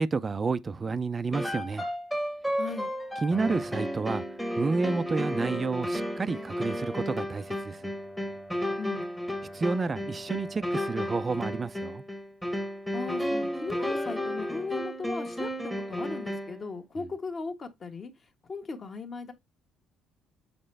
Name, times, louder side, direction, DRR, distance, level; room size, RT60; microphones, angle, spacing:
voice 1, 0.0-1.9 3.2-4.2 4.6-7.9 9.5-12.0 17.0-17.1, right 4 dB, 25° right, 0.5 m, -30 dB
sound 1, 1.3-16.6, equal, 5° left, 1.2 m, -33 dB
voice 2, 2.6-2.9 8.8-9.0 12.9-18.1 18.5-19.3, left 4 dB, 30° left, 1.4 m, -37 dB
7.7 x 4.3 x 3.3 m
cardioid pair, 140°, 0 cm